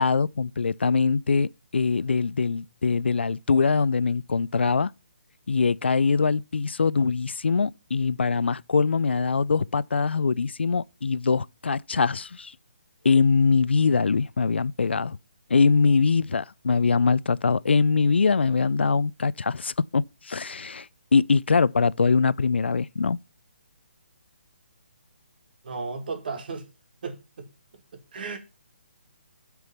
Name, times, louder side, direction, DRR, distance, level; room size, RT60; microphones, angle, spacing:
voice 1, 0.0-4.9 5.5-12.5 13.0-15.2 15.5-23.2, left 5 dB, 75° left, 0.4 m, -23 dB
voice 2, 25.6-26.7 27.0-27.5 28.1-28.4, right 4 dB, 55° right, 2.1 m, -34 dB
6.4 x 6.1 x 7.2 m
figure-of-eight pair, 145°, 6 cm